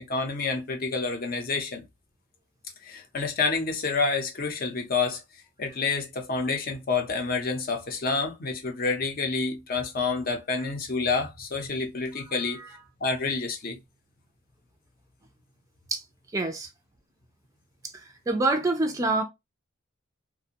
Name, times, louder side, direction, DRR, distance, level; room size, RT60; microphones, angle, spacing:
voice 1, 0.1-1.8 2.8-5.2 5.6-12.6 13.0-13.8, left 4 dB, 45° left, 0.7 m, -28 dB
voice 2, 12.4-12.7 15.9-16.0 16.3-16.7 18.3-19.2, right 2 dB, 15° right, 0.4 m, -26 dB
2.5 x 2.2 x 2.7 m
head